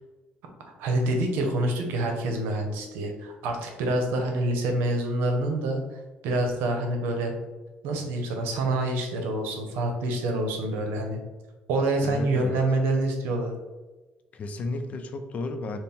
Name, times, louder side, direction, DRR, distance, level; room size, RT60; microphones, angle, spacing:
voice 1, 0.7-5.8 6.2-7.3 7.8-11.2 11.7-13.5, right 2 dB, 90° right, 3 dB, 0.7 m, -27 dB
voice 2, 12.0-12.6 14.3-15.8, left 2 dB, 45° left, 7 dB, 0.4 m, -33 dB
4.2 x 2.1 x 3.4 m, 1.2 s
cardioid pair, 110°, 3 cm